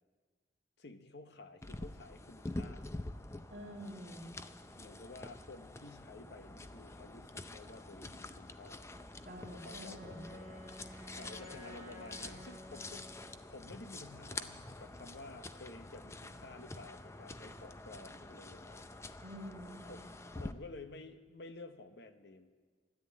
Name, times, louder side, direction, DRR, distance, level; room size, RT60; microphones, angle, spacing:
voice 1, 0.8-2.9 4.8-8.9 9.5-10.6 11.2-18.9 19.8-22.5, left 2 dB, 65° left, 9 dB, 0.9 m, -52 dB
sound 1, 1.6-20.5, left 2 dB, 15° left, 0.5 m, -47 dB
voice 2, 3.5-4.3 9.3-10.3 19.2-20.0, equal, 50° right, -6 dB, 2.2 m, -47 dB
Wind instrument woodwind instrument, 9.5-13.5, equal, 40° left, 3.2 m, -52 dB
13.5 x 11.0 x 8.6 m, 1.5 s
head